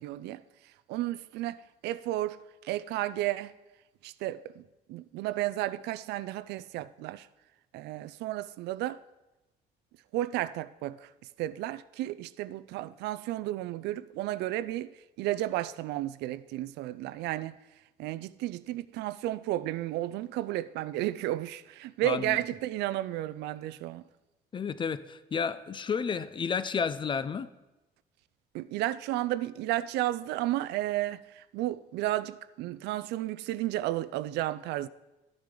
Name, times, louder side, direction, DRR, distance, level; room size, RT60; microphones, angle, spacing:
voice 1, 0.0-3.5 4.0-7.3 7.7-9.0 10.1-11.1 11.4-14.9 15.2-17.6 18.0-24.0 28.5-34.9, right 15 dB, 80° right, 0.4 m, -33 dB
voice 2, 22.0-22.4 24.5-27.5, left 6 dB, 30° left, 0.4 m, -31 dB
12.5 x 8.8 x 3.8 m
cardioid pair, 110°, 17 cm